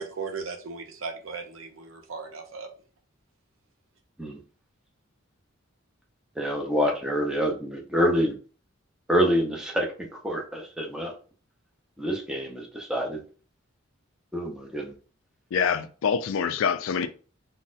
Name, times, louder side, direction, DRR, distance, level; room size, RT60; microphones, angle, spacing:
voice 1, 0.0-2.7, right 4 dB, 80° right, 0.7 m, -37 dB
voice 2, 6.4-8.3 9.1-11.1 12.0-13.2 14.3-14.9, equal, 5° right, 0.6 m, -26 dB
voice 3, 15.5-17.1, left 6 dB, 75° left, 0.4 m, -25 dB
3.9 x 2.1 x 2.5 m
head